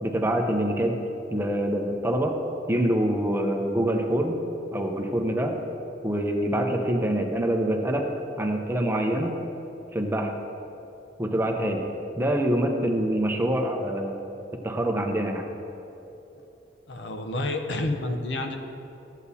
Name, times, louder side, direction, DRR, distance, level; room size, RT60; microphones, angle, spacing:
voice 1, 0.0-1.0 1.3-2.4 2.7-4.4 4.7-5.6 6.0-8.1 8.4-9.3 9.9-10.3 11.2-11.8 12.2-14.2 14.6-15.4, right 1 dB, 15° right, 3 dB, 0.6 m, -25 dB
voice 2, 16.9-18.6, left 2 dB, 70° left, 5 dB, 0.7 m, -29 dB
13.5 x 8.1 x 2.8 m, 2.9 s
head